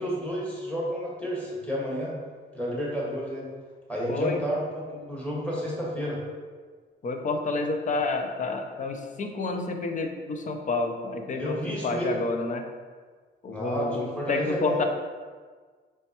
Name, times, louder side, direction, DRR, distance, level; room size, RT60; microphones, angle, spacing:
voice 1, 0.0-2.1 2.5-3.5 3.9-6.2 11.3-12.2 13.5-14.9, equal, 5° left, -5 dB, 1.4 m, -31 dB
voice 2, 4.1-4.4 7.0-12.6 13.4-14.8, left 3 dB, 40° left, 5 dB, 0.5 m, -29 dB
4.2 x 3.4 x 2.9 m, 1.5 s
cardioid pair, 90°, 20 cm